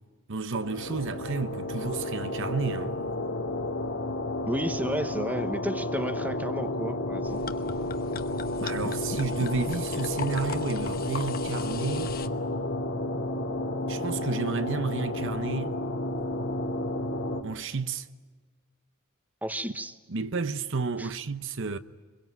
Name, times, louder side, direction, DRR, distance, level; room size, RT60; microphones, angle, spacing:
voice 1, 0.3-3.0 8.6-12.2 13.9-15.7 17.4-18.1 19.6-19.7 20.1-21.8, right 4 dB, 65° right, 0.9 m, -31 dB
sound 1, 0.6-17.4, left 1 dB, 65° left, 2.6 m, -31 dB
voice 2, 4.5-7.4 19.4-19.9 21.0-21.1, right 1 dB, 10° right, 1.1 m, -32 dB
sound 2, 7.3-12.3, left 5 dB, 45° left, 1.2 m, -40 dB
26.5 x 22.5 x 9.4 m
head